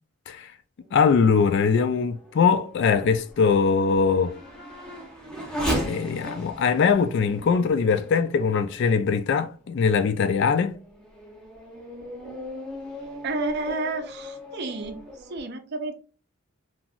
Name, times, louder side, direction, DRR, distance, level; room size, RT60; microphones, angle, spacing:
voice 1, 0.9-4.4 5.6-10.8, left 5 dB, 55° left, 0.3 m, -22 dB
Race car auto racing / Accelerating revving vroom, 1.7-9.3 9.9-10.0 10.6-15.4, equal, 5° left, 0.7 m, -37 dB
voice 2, 13.2-15.9, right 3 dB, 50° right, 0.5 m, -31 dB
3.0 x 2.7 x 2.4 m
head